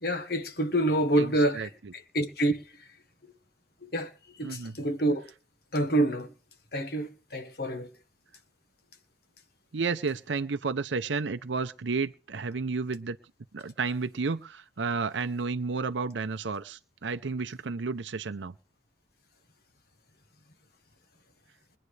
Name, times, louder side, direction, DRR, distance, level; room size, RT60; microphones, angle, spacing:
voice 1, 0.0-2.6 3.8-4.1 4.4-5.3 5.7-6.3 6.7-7.9, right 1 dB, 55° left, 1.4 m, -27 dB
voice 2, 1.2-1.7 4.4-4.8 9.7-13.2 13.5-18.5, right 4 dB, 75° right, 0.6 m, -32 dB
23.0 x 9.5 x 3.3 m
head